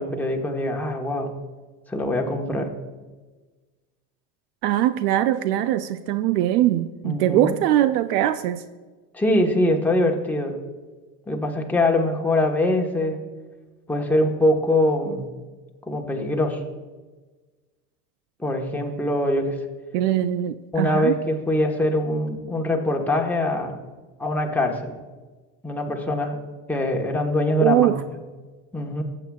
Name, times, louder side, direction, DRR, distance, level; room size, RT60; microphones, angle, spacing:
voice 1, 0.0-1.3 1.9-2.7 7.0-7.6 9.1-10.5 11.3-13.2 13.9-15.3 15.9-16.6 18.4-19.6 20.7-23.8 24.2-24.9 25.6-26.4 26.7-27.9 28.7-29.0, left 1 dB, 5° left, 0 dB, 1.2 m, -23 dB
voice 2, 4.6-8.6 19.9-21.2 27.6-28.0, right 13 dB, 80° right, 12 dB, 0.6 m, -21 dB
14.5 x 8.6 x 2.3 m, 1.3 s
supercardioid pair, 115°, 46 cm